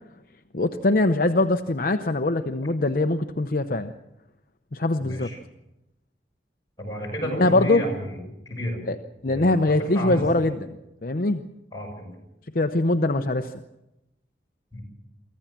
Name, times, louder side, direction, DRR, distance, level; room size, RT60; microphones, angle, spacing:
voice 1, 0.5-3.9 4.7-5.3 7.3-7.8 8.9-9.0 9.2-10.7 11.0-11.4 12.5-13.5, left 2 dB, 50° left, 7 dB, 0.7 m, -22 dB
voice 2, 5.0-5.4 6.8-8.2 8.5-8.8 9.2-10.5 11.7-12.1 14.7-14.8, equal, 20° left, -2 dB, 7.1 m, -32 dB
24.5 x 15.0 x 7.5 m, 0.92 s
head